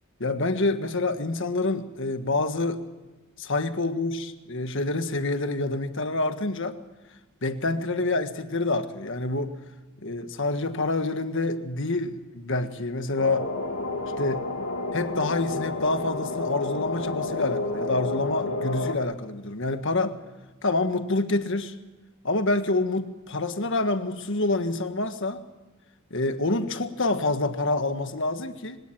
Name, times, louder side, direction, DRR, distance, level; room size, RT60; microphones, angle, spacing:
voice 1, 0.2-2.8 3.4-6.8 7.4-9.6 10.0-13.5 14.2-14.4 14.9-20.2 20.6-21.7 22.2-25.4 26.1-28.8, left 2 dB, 55° left, 9 dB, 1.6 m, -27 dB
sound 1, 13.2-19.0, left 2 dB, 80° left, 2.4 m, -30 dB
24.0 x 18.0 x 9.0 m, 1.2 s
head